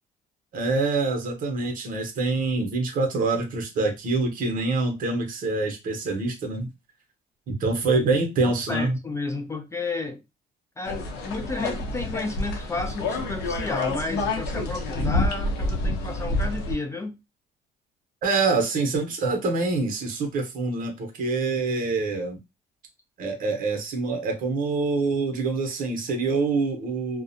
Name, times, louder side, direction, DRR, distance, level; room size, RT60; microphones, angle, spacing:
voice 1, 0.5-6.7 7.5-9.0 18.2-22.4 23.2-27.2, right 3 dB, 55° right, 0.8 m, -25 dB
voice 2, 8.4-10.2 10.8-17.2, left 3 dB, 15° left, 0.3 m, -32 dB
sound 1, 10.9-16.7, left 2 dB, 80° left, 0.8 m, -28 dB
2.4 x 2.1 x 2.6 m
cardioid pair, 110°, 17 cm